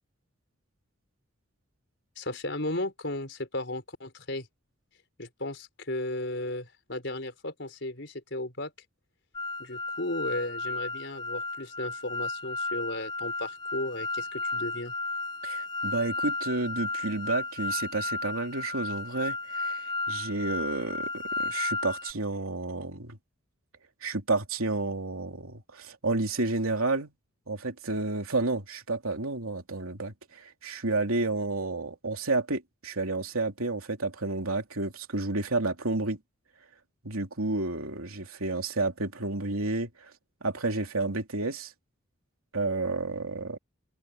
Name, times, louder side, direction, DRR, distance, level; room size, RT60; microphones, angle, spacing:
voice 1, 2.2-4.5 5.2-8.7 9.6-14.9, left 1 dB, 55° left, 5.6 m, -35 dB
sound 1, 9.3-22.1, left 3 dB, 20° left, 0.4 m, -34 dB
voice 2, 15.4-23.2 24.0-27.1 27.5-36.2 37.0-40.1 40.4-41.7 42.5-43.6, right 2 dB, 90° right, 3.2 m, -31 dB
open air
head